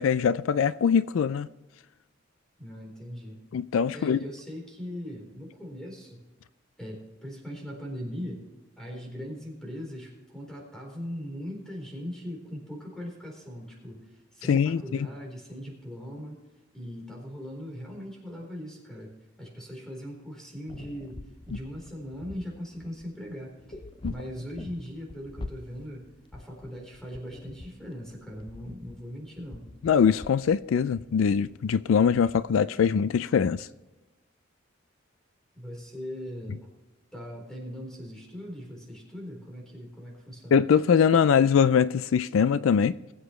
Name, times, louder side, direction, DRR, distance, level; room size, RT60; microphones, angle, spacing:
voice 1, 0.0-1.5 3.5-4.2 14.5-15.1 24.0-24.1 29.8-33.7 40.5-42.9, left 7 dB, 75° left, 0.4 m, -22 dB
voice 2, 2.6-3.4 3.9-6.2 6.8-8.4 8.8-14.0 14.3-16.3 16.7-19.1 19.4-21.2 21.5-23.8 24.1-29.6 35.5-36.7 37.1-40.6, equal, 5° left, 4.0 m, -40 dB
sound 1, 20.7-32.4, left 2 dB, 25° left, 0.6 m, -45 dB
20.5 x 8.2 x 3.2 m
head